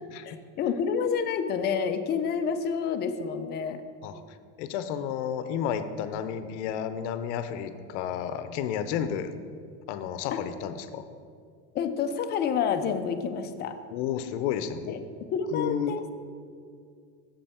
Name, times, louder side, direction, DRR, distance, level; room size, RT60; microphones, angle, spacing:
voice 1, 0.3-3.8 10.3-10.4 11.7-13.8 14.9-15.0 15.3-16.1, left 6 dB, 30° left, 7 dB, 0.4 m, -29 dB
voice 2, 4.6-9.3 9.9-11.0 13.9-15.0 15.5-15.9, left 8 dB, 85° left, 10 dB, 0.6 m, -31 dB
7.3 x 5.4 x 4.3 m, 2.2 s
cardioid pair, 145°, 34 cm